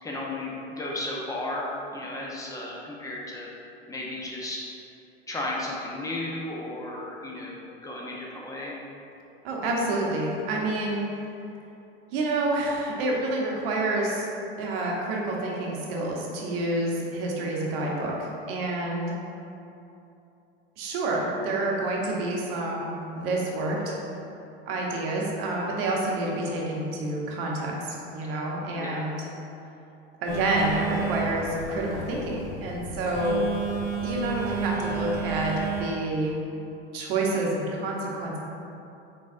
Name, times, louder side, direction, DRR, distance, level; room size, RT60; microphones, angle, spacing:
voice 1, 0.0-3.5 3.9-4.6 5.3-8.8 17.8-18.0 28.8-29.0, left 1 dB, 10° left, -4 dB, 0.7 m, -34 dB
voice 2, 9.4-11.0 12.1-14.3 14.6-19.2 20.8-24.0 24.7-29.2 30.2-33.4 34.0-36.4 36.9-38.4, right 2 dB, 65° right, -2 dB, 0.9 m, -28 dB
Telephone, 30.3-35.8, right 5 dB, 50° left, 1.4 m, -32 dB
4.0 x 3.9 x 2.5 m, 2.8 s
hypercardioid pair, 90°, 31 cm